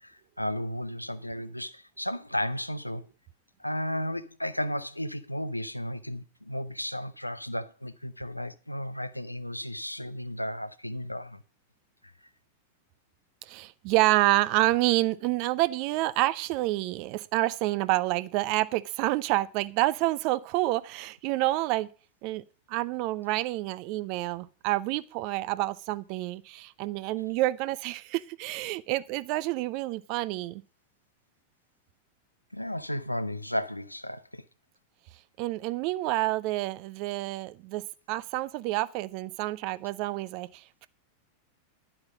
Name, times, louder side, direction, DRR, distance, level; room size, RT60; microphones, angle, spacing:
voice 1, 0.0-3.1 3.6-11.4 32.5-34.4, equal, 85° left, 0.7 m, -34 dB
voice 2, 13.4-21.9 22.2-30.6 35.4-37.8 38.1-40.9, right 18 dB, 45° right, 0.7 m, -28 dB
11.5 x 8.9 x 5.2 m
figure-of-eight pair, 90°, 0 cm